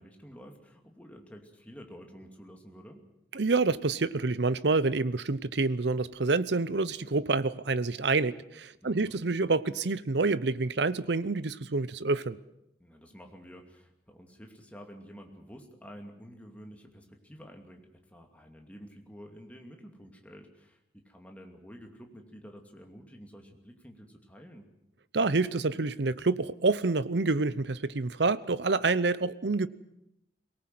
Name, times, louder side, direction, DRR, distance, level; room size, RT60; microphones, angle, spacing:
voice 1, 0.0-3.0 8.8-9.2 12.8-24.7, equal, 10° left, 2 dB, 2.6 m, -50 dB
voice 2, 3.3-12.4 25.1-29.7, right 3 dB, 75° right, 17 dB, 0.8 m, -27 dB
23.0 x 18.5 x 7.8 m, 0.84 s
head